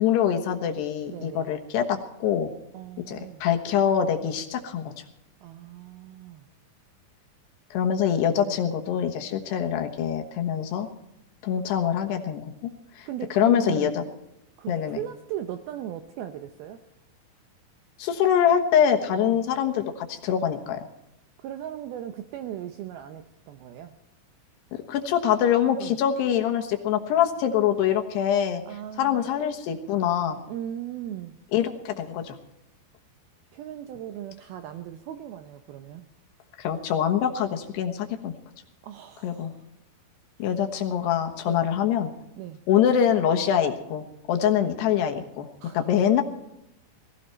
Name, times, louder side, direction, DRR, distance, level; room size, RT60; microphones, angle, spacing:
voice 1, 0.0-2.5 3.1-4.9 7.7-10.9 11.4-14.0 14.7-15.0 18.0-20.9 24.9-28.6 29.0-30.4 31.5-32.4 36.6-38.3 39.2-39.5 40.4-42.1 42.7-45.5 45.7-46.2, left 9 dB, 70° left, 5 dB, 3.2 m, -24 dB
voice 2, 1.1-1.5 2.7-3.4 5.4-6.5 8.5-8.6 13.0-14.0 14.6-16.8 19.2-19.4 21.4-24.0 25.8-26.0 28.7-29.3 30.5-31.4 33.5-36.1 38.8-39.5 40.4-40.5 41.5-41.7 42.4-42.6 45.6-46.0, right 11 dB, 80° right, 8 dB, 2.2 m, -37 dB
19.0 x 16.5 x 4.4 m, 0.83 s
omnidirectional pair, 5.3 m